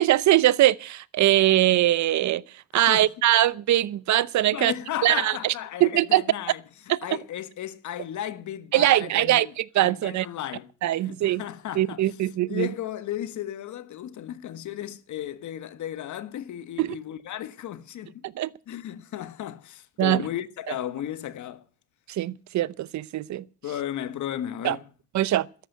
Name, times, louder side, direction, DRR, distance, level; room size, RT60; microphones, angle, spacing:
voice 1, 0.0-2.4 2.7-4.7 5.0-5.5 5.8-6.2 6.9-7.0 8.7-10.3 10.8-11.4 11.8-12.7 16.8-16.9 18.4-18.5 20.0-20.2 22.1-23.4 24.6-24.8 25.1-25.5, right 14 dB, 70° right, 0.8 m, -22 dB
voice 2, 4.5-6.6 7.0-12.1 12.5-18.2 18.7-21.6 23.6-24.8, left 11 dB, 75° left, 1.6 m, -35 dB
13.5 x 11.0 x 8.0 m
cardioid pair, 90°, 30 cm